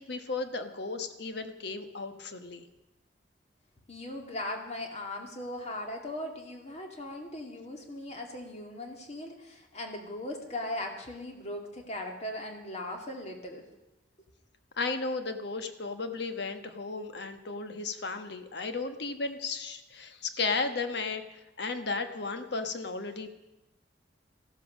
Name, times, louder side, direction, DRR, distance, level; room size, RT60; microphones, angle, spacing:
voice 1, 0.0-2.7 14.8-21.2 21.6-23.4, left 4 dB, 65° left, 8 dB, 1.3 m, -34 dB
voice 2, 3.9-13.7, left 1 dB, 40° left, 3 dB, 2.2 m, -39 dB
14.5 x 12.5 x 6.4 m, 0.97 s
head